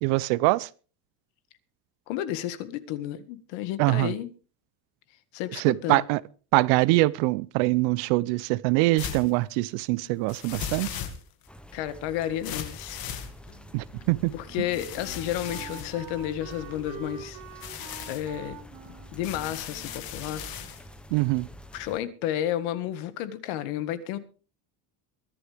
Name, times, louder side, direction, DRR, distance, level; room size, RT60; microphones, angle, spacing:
voice 1, 0.0-0.7 3.8-4.1 5.6-6.2 6.5-11.0 13.7-14.3 21.1-21.5, right 21 dB, 85° right, 0.7 m, -24 dB
voice 2, 2.1-4.3 5.3-6.0 11.7-13.0 14.3-17.4 18.1-18.6 19.1-20.4 21.7-24.2, left 12 dB, 85° left, 1.8 m, -31 dB
sound 1, 9.0-9.3 10.3-11.5 12.4-13.7 14.7-16.8 17.5-18.3 19.2-20.8, left 9 dB, 50° left, 2.2 m, -38 dB
sound 2, 11.5-22.0, equal, ahead, 0.7 m, -47 dB
Wind instrument woodwind instrument, 13.5-20.8, right 8 dB, 45° right, 3.2 m, -46 dB
23.0 x 11.5 x 3.4 m
cardioid pair, 170°, 45 cm